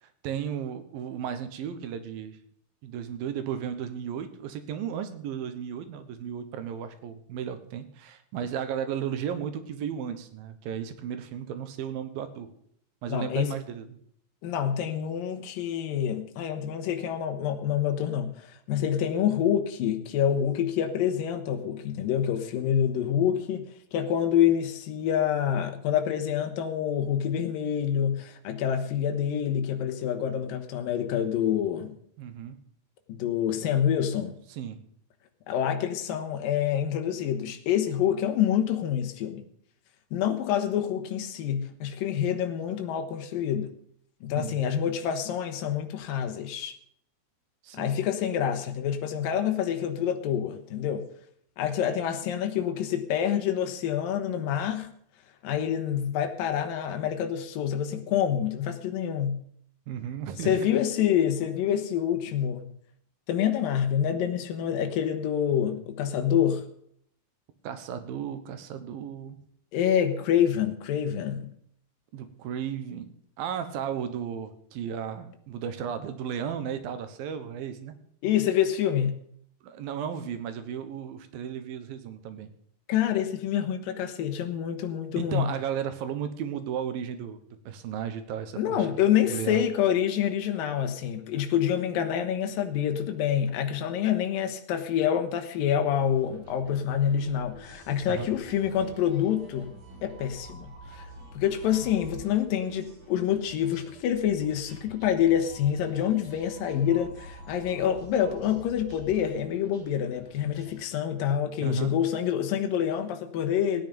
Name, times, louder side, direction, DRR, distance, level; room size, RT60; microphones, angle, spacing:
voice 1, 0.0-2.4 2.8-12.5 13.0-14.0 32.2-32.6 34.5-34.8 44.4-44.7 47.6-47.9 59.9-60.7 67.6-69.4 72.1-73.1 73.4-77.9 79.6-82.5 85.1-89.6 98.1-98.3 111.6-111.9, right 8 dB, 80° right, 10 dB, 2.9 m, -34 dB
voice 2, 13.1-13.5 14.4-23.6 23.9-32.0 33.1-34.3 35.5-39.5 40.1-43.7 44.2-46.7 47.7-51.0 51.6-54.9 55.4-59.4 60.4-62.7 63.3-66.7 69.7-71.5 78.2-79.2 82.9-85.5 88.6-99.8 100.0-101.1 101.3-113.8, left 9 dB, 75° left, 6 dB, 2.8 m, -27 dB
sound 1, 95.7-110.8, right 1 dB, 35° right, 5.5 m, -48 dB
17.0 x 9.6 x 5.2 m, 0.65 s
omnidirectional pair, 4.1 m